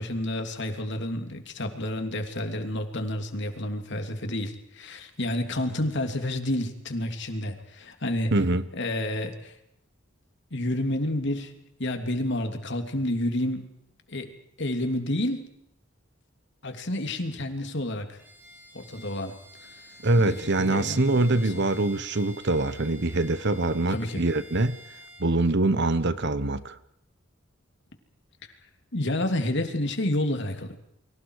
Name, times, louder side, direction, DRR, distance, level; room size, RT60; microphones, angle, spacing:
voice 1, 0.0-8.3 8.7-9.5 10.5-11.5 11.8-13.7 14.1-14.3 14.6-15.5 16.6-18.2 18.7-19.7 20.2-20.4 20.7-21.6 23.9-24.2 28.9-30.8, left 1 dB, 60° left, 3.0 m, -30 dB
voice 2, 8.3-8.6 20.0-24.8 25.2-26.8, right 2 dB, 60° right, 1.2 m, -24 dB
Bowed string instrument, 18.2-25.3, left 1 dB, 10° right, 7.2 m, -49 dB
29.5 x 24.5 x 4.9 m
head